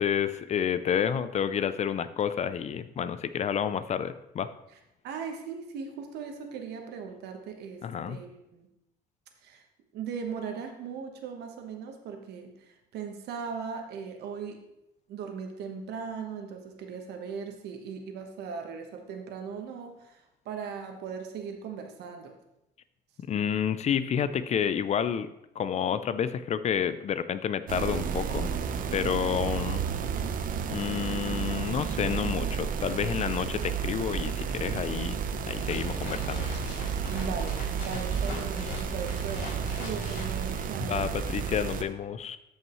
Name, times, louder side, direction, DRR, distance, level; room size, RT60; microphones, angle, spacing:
voice 1, 0.0-4.5 7.8-8.2 23.3-25.3 25.6-28.5 28.9-29.8 30.7-35.2 35.5-36.5 40.9-42.4, left 8 dB, 40° left, 13 dB, 0.5 m, -29 dB
voice 2, 5.0-8.7 9.4-9.6 9.9-14.6 15.1-22.3 37.1-41.0, right 6 dB, 75° right, 4 dB, 1.3 m, -38 dB
sound 1, 27.7-41.8, right 7 dB, 55° right, 0.7 m, -32 dB
sound 2, 35.3-41.5, left 2 dB, 70° left, 3.6 m, -41 dB
12.5 x 5.6 x 3.1 m, 0.85 s
cardioid pair, 110°, 17 cm